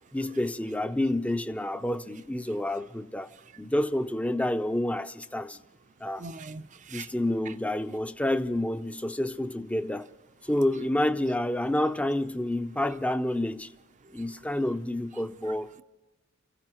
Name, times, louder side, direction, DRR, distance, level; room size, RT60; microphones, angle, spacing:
voice 1, 0.1-3.3 3.6-5.6 6.0-6.2 6.9-10.1 10.5-13.7 14.1-15.7, left 1 dB, 5° left, 0.5 m, -29 dB
voice 2, 6.0-7.1 7.5-7.6 14.0-14.2, right 4 dB, 35° right, 0.6 m, -42 dB
28.5 x 15.5 x 3.0 m
head